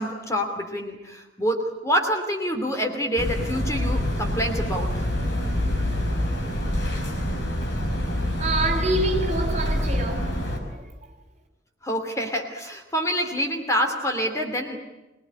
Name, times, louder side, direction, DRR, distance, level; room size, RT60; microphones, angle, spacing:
voice 1, 0.0-5.1 11.8-14.8, equal, 15° left, 2.8 m, -27 dB
sound 1, 3.2-10.6, left 1 dB, 65° left, 5.3 m, -26 dB
voice 2, 8.4-10.3 10.7-10.8, right 2 dB, 40° right, 3.9 m, -26 dB
24.5 x 20.0 x 9.8 m
head